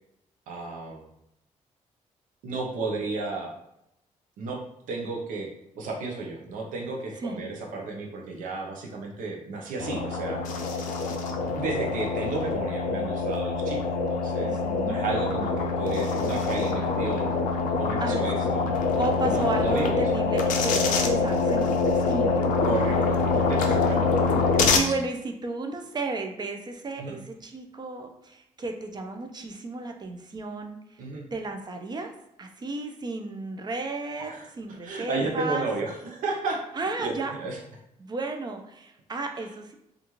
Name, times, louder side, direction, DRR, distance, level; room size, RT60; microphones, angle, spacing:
voice 1, 0.5-1.0 2.4-3.5 4.4-5.5 5.7-10.4 10.7-10.8 11.5-17.3 17.8-18.6 19.2-20.0 22.6-24.2 24.6-24.7 27.0-27.2 31.0-31.3 34.2-34.5 34.8-37.6 39.4-39.5, right 3 dB, 85° right, 0 dB, 0.6 m, -33 dB
sound 1, 9.8-24.8, left 4 dB, 80° left, 0.4 m, -25 dB
voice 2, 14.4-15.0 18.0-22.5 24.7-31.0 31.3-32.1 32.4-35.7 36.7-37.5 38.0-39.7, right 3 dB, 30° right, 4 dB, 0.4 m, -33 dB
2.4 x 2.3 x 3.0 m, 0.81 s
cardioid pair, 75°, 13 cm